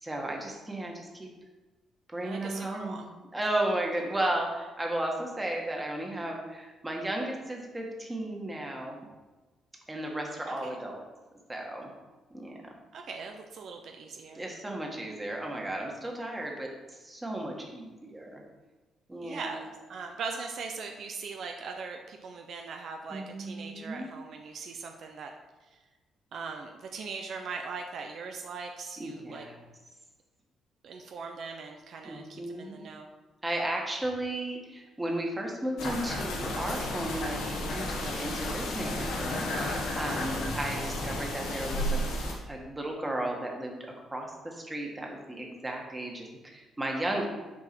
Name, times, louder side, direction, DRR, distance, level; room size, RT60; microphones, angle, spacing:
voice 1, 0.0-1.3 2.1-3.1 3.3-9.0 9.9-11.0 11.5-11.9 12.3-12.6 14.3-18.4 19.1-19.5 23.1-24.1 29.0-29.6 32.0-32.8 33.4-42.1 42.5-47.2, right 1 dB, 15° right, 0 dB, 1.9 m, -34 dB
voice 2, 2.2-3.1 10.5-10.8 12.9-14.5 19.2-25.3 25.7-25.8 26.3-29.5 30.8-33.1, right 4 dB, 65° right, 3 dB, 0.7 m, -40 dB
sound 1, 35.8-42.3, left 1 dB, 90° left, 1.7 m, -32 dB
7.1 x 4.7 x 6.2 m, 1.2 s
cardioid pair, 90°, 0 cm